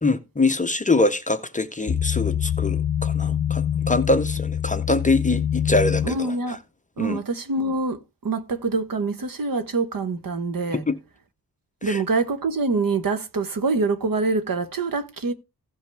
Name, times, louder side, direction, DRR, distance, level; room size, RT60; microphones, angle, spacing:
voice 1, 0.0-6.6 7.0-7.2 10.7-11.0 11.8-12.0, left 2 dB, 20° left, 0.6 m, -24 dB
sound 1, 1.9-6.1, left 9 dB, 55° left, 1.0 m, -25 dB
voice 2, 6.0-6.6 7.0-10.8 11.8-15.3, right 3 dB, 60° right, 1.1 m, -25 dB
15.5 x 5.3 x 3.4 m
wide cardioid pair, 165°, 38 cm